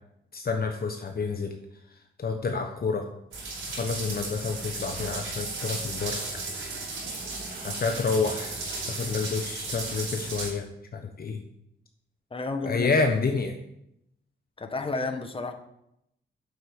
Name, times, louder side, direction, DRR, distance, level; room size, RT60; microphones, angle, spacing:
voice 1, 0.3-1.5 2.2-3.1 3.7-6.4 7.6-10.7 10.9-11.4 12.6-13.5, left 4 dB, 50° left, 5 dB, 1.0 m, -29 dB
sound 1, 3.3-10.5, right 3 dB, 80° right, 4.7 m, -35 dB
sound 2, 5.0-10.0, right 2 dB, 50° right, 2.6 m, -46 dB
voice 2, 12.3-12.9 14.6-15.5, left 3 dB, 25° left, 6 dB, 1.4 m, -31 dB
7.7 x 6.9 x 8.1 m, 0.80 s
cardioid pair, 80°, 21 cm